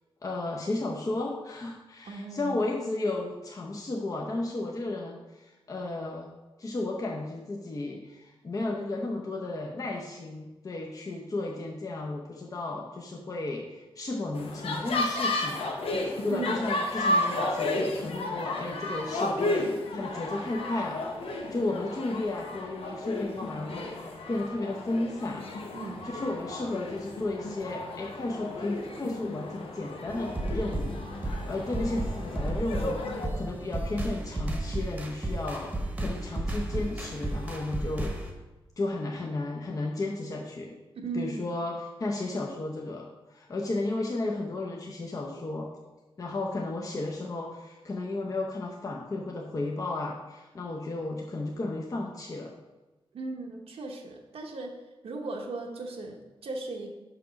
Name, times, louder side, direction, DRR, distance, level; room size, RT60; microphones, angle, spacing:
voice 1, 0.2-6.3 6.6-15.7 16.0-25.5 26.1-38.3 38.8-40.7 41.1-45.7 46.2-52.5, left 2 dB, 35° left, -1 dB, 0.7 m, -33 dB
voice 2, 2.1-2.7 16.3-16.6 25.7-26.0 41.0-41.5 53.1-56.9, right 3 dB, 90° right, 0 dB, 0.9 m, -37 dB
sound 1, 14.3-33.3, left 2 dB, 75° left, 0.9 m, -33 dB
sound 2, 30.1-38.3, right 1 dB, 15° right, 0.9 m, -33 dB
5.8 x 5.8 x 5.1 m, 1.1 s
wide cardioid pair, 165°, 10 cm